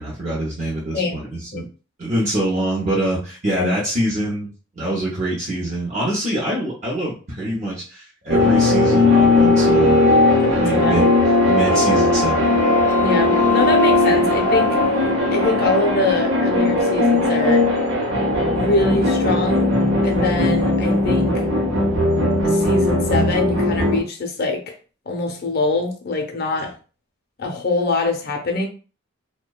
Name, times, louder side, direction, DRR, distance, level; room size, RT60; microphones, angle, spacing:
voice 1, 0.0-1.6 2.0-4.5 4.8-10.2 10.6-11.0 11.5-12.6 26.6-26.7, right 1 dB, 35° right, 0.6 m, -25 dB
sound 1, 8.3-24.0, left 2 dB, 80° right, 0.8 m, -17 dB
voice 2, 10.4-11.0 13.0-14.8 15.3-17.7 18.5-19.8 20.0-21.5 22.4-24.7 25.1-26.7 27.4-28.7, left 3 dB, 50° left, 0.5 m, -23 dB
2.7 x 2.1 x 2.2 m
head